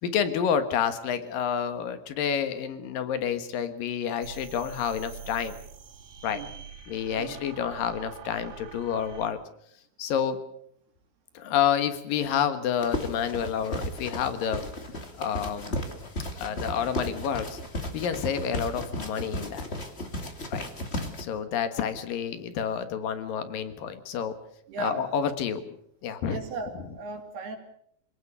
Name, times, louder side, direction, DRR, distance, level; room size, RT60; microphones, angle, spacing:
voice 1, 0.0-5.6 6.2-6.4 6.9-9.4 10.0-10.4 11.3-14.7 15.2-15.8 16.3-17.6 17.9-19.7 20.5-20.7 21.2-24.4 24.8-25.6 26.0-26.4 26.8-27.0, left 8 dB, 60° left, 10 dB, 2.7 m, -29 dB
sound 1, 4.2-9.3, right 8 dB, 80° right, 5.9 m, -44 dB
sound 2, 12.8-21.2, left 1 dB, 25° left, 1.3 m, -35 dB
voice 2, 24.7-25.0 26.3-27.6, right 3 dB, 60° right, 4 dB, 4.4 m, -36 dB
26.5 x 19.0 x 6.9 m, 0.70 s
omnidirectional pair, 5.4 m